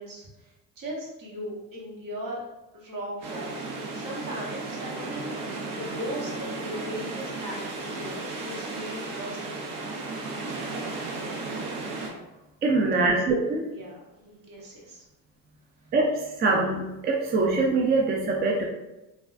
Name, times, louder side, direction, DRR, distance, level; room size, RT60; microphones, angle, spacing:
voice 1, 0.0-2.4 2.7-3.7 3.9-9.7 12.8-13.2 13.7-15.0, equal, 55° right, -3 dB, 1.2 m, -38 dB
sound 1, 3.2-12.1, right 3 dB, 85° right, 0.8 m, -34 dB
voice 2, 12.6-13.7 15.9-18.7, right 3 dB, 25° right, -1 dB, 0.3 m, -24 dB
3.4 x 2.3 x 2.4 m, 1.0 s
cardioid pair, 105°, 40 cm